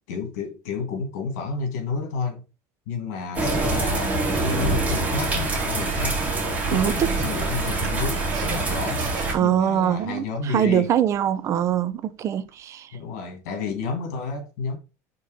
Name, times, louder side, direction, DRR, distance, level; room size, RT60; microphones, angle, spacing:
voice 1, 0.1-2.4 2.9-6.4 6.7-9.0 9.4-10.9 12.9-14.8, left 4 dB, 85° left, 2.3 m, -31 dB
sound 1, 3.3-9.3, right 3 dB, 15° right, 2.5 m, -25 dB
voice 2, 6.7-7.1 9.3-12.9, right 10 dB, 35° right, 0.6 m, -23 dB
Laughter, 7.7-9.4 9.7-10.4 10.7-12.5, right 8 dB, 55° right, 1.2 m, -38 dB
5.3 x 4.2 x 4.9 m
cardioid pair, 150°, 8 cm